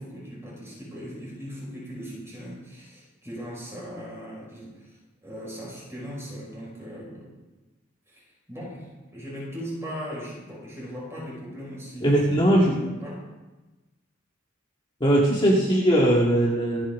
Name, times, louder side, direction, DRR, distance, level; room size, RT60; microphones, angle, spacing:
voice 1, 0.0-7.4 8.1-8.2 8.5-12.1 12.4-13.3, equal, 15° right, -4 dB, 5.3 m, -39 dB
voice 2, 12.0-12.8 15.0-16.9, right 1 dB, 25° left, -4 dB, 1.9 m, -20 dB
26.0 x 9.0 x 3.7 m, 1.1 s
head